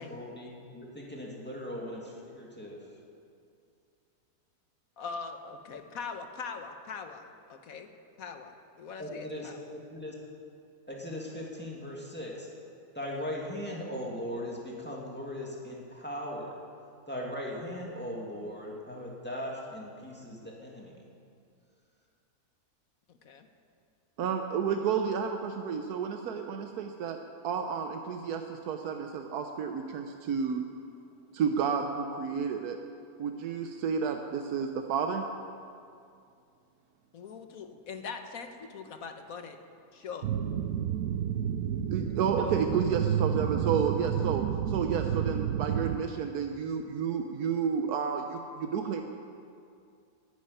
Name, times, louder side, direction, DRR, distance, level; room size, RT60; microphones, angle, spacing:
voice 1, 0.0-2.9 9.0-10.1 10.9-12.5 12.9-16.5 17.1-21.0, left 1 dB, 5° left, -3 dB, 2.3 m, -39 dB
voice 2, 5.0-7.9 8.2-9.7 23.1-23.5 37.1-39.6 39.9-40.3 42.4-42.6, left 5 dB, 70° left, 7 dB, 1.4 m, -41 dB
voice 3, 24.2-27.2 27.4-30.6 31.3-32.8 33.2-35.2 41.9-49.0, right 6 dB, 90° right, 5 dB, 1.3 m, -31 dB
sound 1, 40.2-46.0, right 9 dB, 75° right, 1.0 m, -30 dB
11.0 x 10.0 x 9.8 m, 2.4 s
omnidirectional pair, 1.6 m